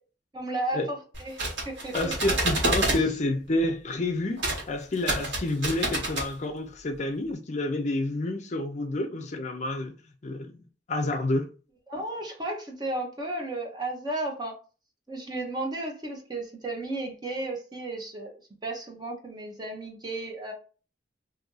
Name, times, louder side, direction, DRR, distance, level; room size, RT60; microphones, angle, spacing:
voice 1, 0.3-2.1 2.9-3.0 11.9-14.5 15.1-18.3 18.6-20.5, right 2 dB, 25° right, 0.8 m, -34 dB
sound 1, 1.1-3.0 4.4-4.6 4.9-6.3, right 2 dB, 85° right, 1.4 m, -28 dB
voice 2, 1.9-9.9 10.2-11.5, left 2 dB, 40° left, 0.5 m, -29 dB
2.7 x 2.6 x 3.8 m
head